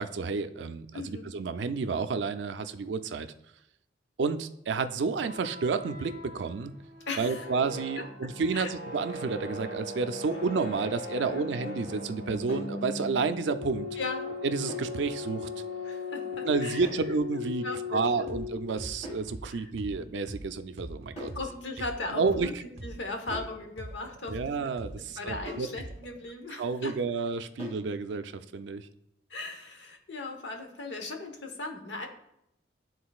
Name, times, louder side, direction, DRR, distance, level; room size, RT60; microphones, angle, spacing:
voice 1, 0.0-3.3 4.2-6.7 7.2-13.9 14.4-15.5 16.4-21.3 22.1-22.5 24.3-25.7 26.6-28.9, right 4 dB, 75° right, 10 dB, 0.4 m, -30 dB
voice 2, 0.9-1.3 7.1-7.5 8.0-8.1 8.5-8.7 11.2-11.4 14.0-14.3 15.8-16.9 17.4-18.3 19.5-19.7 21.3-24.6 25.2-26.9 29.3-32.1, left 2 dB, 80° left, 4 dB, 1.0 m, -38 dB
sound 1, 5.1-18.9, left 3 dB, 60° left, 2.0 m, -39 dB
sound 2, 12.5-12.8 14.7-15.0 16.8-17.1 19.0-19.3 21.2-21.5 23.3-23.6 25.4-25.8 27.6-27.9, left 1 dB, 35° left, 2.4 m, -41 dB
sound 3, 18.3-18.5 18.8-22.5 22.8-26.2, right 1 dB, 35° right, 0.6 m, -42 dB
11.5 x 3.9 x 2.3 m, 0.83 s
head